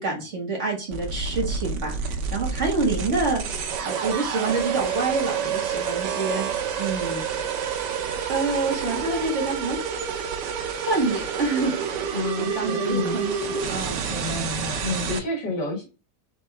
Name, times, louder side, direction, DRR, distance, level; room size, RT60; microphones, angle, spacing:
voice 1, 0.0-3.4 3.8-6.5 6.8-7.2 8.3-9.8 10.9-12.1 12.4-14.0, right 3 dB, 45° right, 0 dB, 2.0 m, -27 dB
sound 1, 0.9-15.2, right 6 dB, 80° right, 1.4 m, -29 dB
voice 2, 12.1-13.3 14.1-15.9, left 3 dB, 80° left, 1 dB, 1.9 m, -30 dB
4.1 x 3.6 x 3.3 m, 0.31 s
omnidirectional pair, 1.8 m